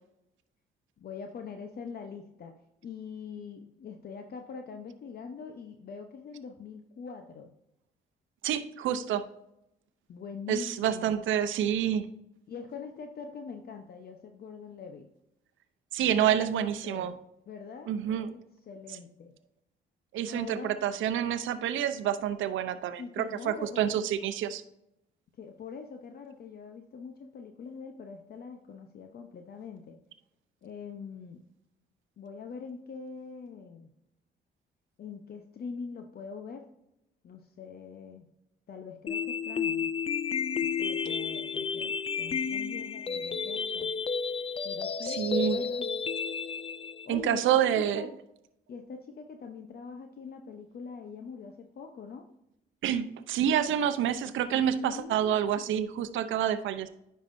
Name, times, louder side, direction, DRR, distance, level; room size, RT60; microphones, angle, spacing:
voice 1, 1.0-2.5 2.8-7.5 10.1-11.2 12.5-15.1 16.0-17.2 17.5-19.3 20.3-20.8 23.0-24.0 25.4-30.0 30.6-31.4 32.2-33.9 35.0-36.7 37.2-38.3 38.7-39.9 40.6-43.9 44.6-45.9 47.0-48.1 48.7-52.3 54.5-55.4, left 5 dB, 50° left, 5 dB, 0.8 m, -43 dB
voice 2, 8.4-9.3 10.5-12.1 15.9-17.1 17.9-18.3 20.1-24.6 45.1-45.6 47.1-48.1 52.8-56.9, right 9 dB, 80° right, 11 dB, 0.7 m, -28 dB
sound 1, 39.1-47.1, left 6 dB, 30° left, 0.4 m, -32 dB
9.8 x 5.6 x 2.6 m, 0.84 s
cardioid pair, 90°, 20 cm